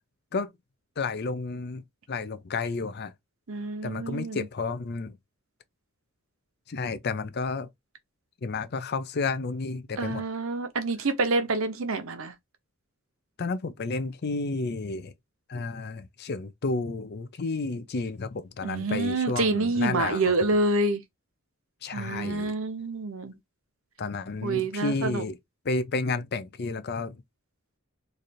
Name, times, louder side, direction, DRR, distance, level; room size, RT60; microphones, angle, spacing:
voice 1, 1.0-3.1 3.8-5.1 6.7-7.7 8.4-10.2 13.4-15.1 15.5-20.6 21.8-22.5 24.0-25.4 25.6-27.2, left 3 dB, 50° left, 0.5 m, -31 dB
voice 2, 3.5-4.4 10.0-12.3 18.6-21.0 21.9-23.4 24.4-25.2, right 2 dB, 65° right, 0.8 m, -27 dB
3.3 x 2.5 x 4.2 m
head